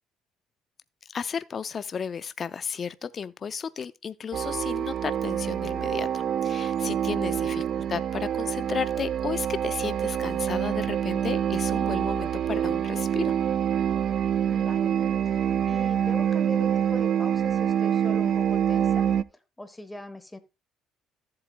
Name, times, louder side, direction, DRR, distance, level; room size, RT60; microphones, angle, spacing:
voice 1, 1.1-13.3, left 6 dB, 35° left, 0.5 m, -33 dB
sound 1, 4.3-19.2, right 9 dB, 50° right, 0.4 m, -26 dB
voice 2, 7.2-7.7 14.5-14.9 15.2-20.4, left 2 dB, 10° left, 1.1 m, -42 dB
14.0 x 7.8 x 2.2 m
cardioid pair, 110°, 0 cm